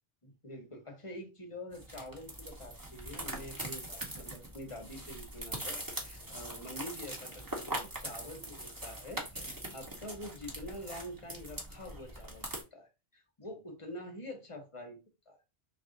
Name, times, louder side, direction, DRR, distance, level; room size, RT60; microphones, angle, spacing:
voice 1, 0.2-15.0 15.3-15.4, left 1 dB, 30° left, 0.9 m, -46 dB
sound 1, 1.7-12.6, right 1 dB, 20° right, 0.8 m, -42 dB
3.3 x 2.5 x 3.8 m
omnidirectional pair, 1.1 m